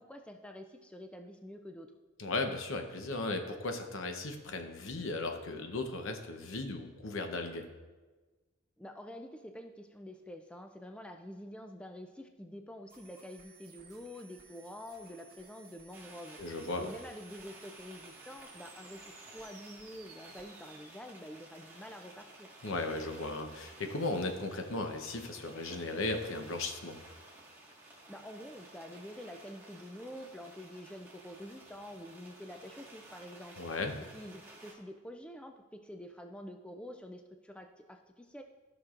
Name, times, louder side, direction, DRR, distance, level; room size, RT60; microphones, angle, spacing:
voice 1, 0.0-1.9 8.8-22.5 28.1-33.6 34.1-38.4, equal, 5° left, 5 dB, 0.3 m, -47 dB
voice 2, 2.2-7.7 16.4-16.9 22.6-27.0 33.6-33.9, left 2 dB, 65° left, 5 dB, 0.9 m, -36 dB
sound 1, 12.9-20.9, right 5 dB, 45° right, 2.2 m, -58 dB
sound 2, 15.9-34.7, right 2 dB, 10° right, 1.6 m, -54 dB
14.0 x 6.0 x 2.5 m, 1.3 s
head